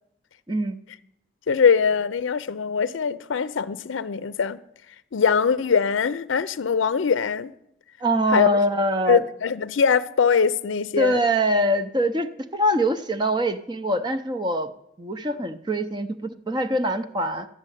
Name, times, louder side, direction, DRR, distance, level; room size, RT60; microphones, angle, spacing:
voice 1, 1.5-4.6 5.1-7.5 8.3-8.5 9.1-11.3, left 6 dB, 80° left, 0.5 m, -22 dB
voice 2, 8.0-9.2 11.0-14.7 15.0-17.5, equal, 20° right, 0.6 m, -23 dB
13.0 x 7.5 x 9.9 m
head